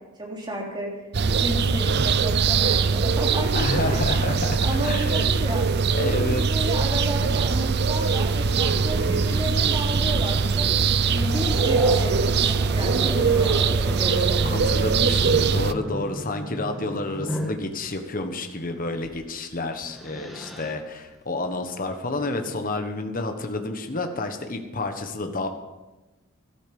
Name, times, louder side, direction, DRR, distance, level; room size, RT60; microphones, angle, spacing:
voice 1, 0.2-1.0 1.2-4.2 4.6-5.7 6.0-10.6 11.1-14.3, equal, 20° right, -2 dB, 3.3 m, -32 dB
sound 1, 1.1-15.7, right 5 dB, 50° right, 0.5 m, -22 dB
voice 2, 3.5-5.3 5.9-6.5 14.2-25.5, left 2 dB, 40° left, 6 dB, 1.4 m, -30 dB
Growling, 8.6-17.6 19.0-19.2 19.6-20.7, equal, ahead, 1.7 m, -35 dB
13.5 x 13.0 x 5.4 m, 1.1 s
head